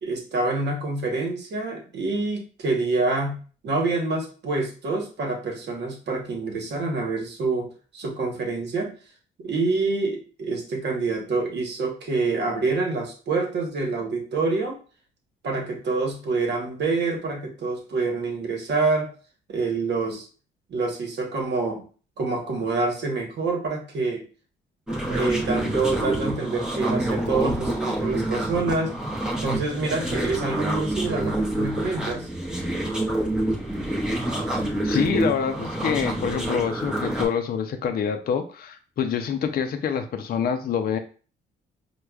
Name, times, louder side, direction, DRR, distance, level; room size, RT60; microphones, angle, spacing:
voice 1, 0.0-3.4 3.6-8.9 9.4-14.8 15.4-19.1 19.5-20.3 20.7-21.8 22.2-24.2 25.1-28.9 29.4-32.3, right 3 dB, 60° right, 2 dB, 1.0 m, -26 dB
sound 1, 24.9-37.2, right 1 dB, 5° right, 0.8 m, -27 dB
voice 2, 34.8-41.0, left 7 dB, 50° left, 6 dB, 0.4 m, -26 dB
4.6 x 2.2 x 2.3 m, 0.38 s
cardioid pair, 90°, 20 cm